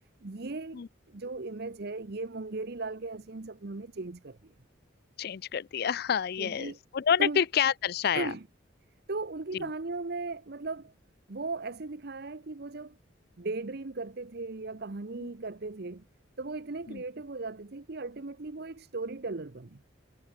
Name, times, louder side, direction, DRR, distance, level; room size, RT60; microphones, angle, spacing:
voice 1, 0.2-4.5 6.4-6.8 7.2-7.4 8.1-8.4 9.1-10.9 11.3-13.0 13.4-16.0 16.4-19.8, right 3 dB, 55° right, 0.9 m, -37 dB
voice 2, 5.2-8.3 9.5-9.7 16.9-17.0, left 8 dB, 50° left, 0.4 m, -28 dB
head